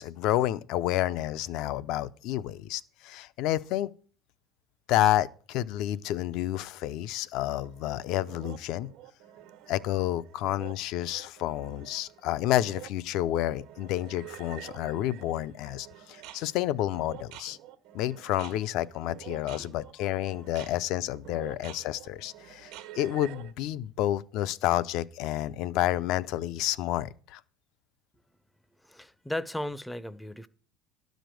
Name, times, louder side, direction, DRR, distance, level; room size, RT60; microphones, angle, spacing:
voice 1, 0.0-3.9 4.9-8.9 9.7-17.6 17.9-27.4, left 13 dB, 65° left, 0.5 m, -30 dB
sound 1, 7.6-23.5, right 12 dB, 80° right, 1.3 m, -48 dB
voice 2, 28.8-30.5, left 1 dB, 5° left, 0.5 m, -36 dB
12.0 x 5.1 x 7.6 m
cardioid pair, 135°, 0 cm